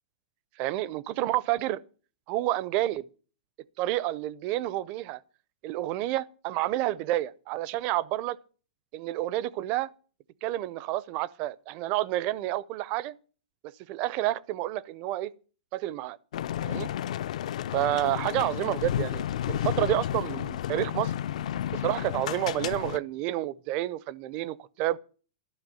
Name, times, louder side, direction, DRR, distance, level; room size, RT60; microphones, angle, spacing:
voice 1, 0.6-1.8 2.3-3.0 3.8-5.2 5.6-8.4 8.9-9.9 10.4-13.1 13.6-15.3 15.7-16.2 16.6-16.9 17.7-21.1 21.7-25.0, right 15 dB, 30° right, 0.5 m, -29 dB
sound 1, 16.3-23.0, left 11 dB, 65° left, 0.5 m, -32 dB
12.0 x 6.0 x 8.7 m
supercardioid pair, 165°, 4 cm